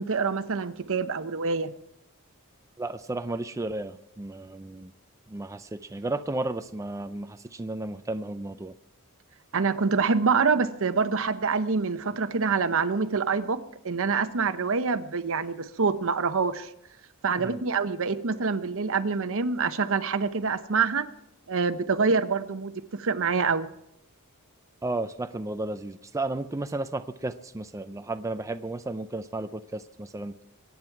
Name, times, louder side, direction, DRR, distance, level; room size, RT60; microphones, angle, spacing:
voice 1, 0.0-1.7 9.5-16.7 17.2-21.1 21.5-22.7 23.0-23.7, right 5 dB, 65° right, 11 dB, 0.8 m, -26 dB
voice 2, 2.8-4.9 5.3-8.7 17.4-17.6 24.8-30.3, right 2 dB, 15° right, 9 dB, 0.4 m, -33 dB
23.0 x 9.5 x 4.7 m, 0.80 s
head